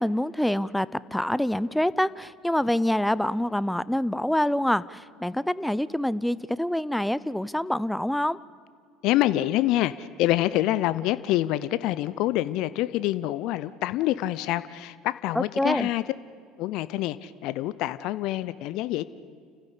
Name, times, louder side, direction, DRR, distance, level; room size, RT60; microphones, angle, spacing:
voice 1, 0.0-8.4 15.3-15.9, left 1 dB, 5° left, 18 dB, 0.7 m, -26 dB
voice 2, 9.0-16.0 16.6-19.0, left 15 dB, 60° left, 16 dB, 0.7 m, -26 dB
29.5 x 15.0 x 8.5 m, 2.2 s
hypercardioid pair, 70°, 0 cm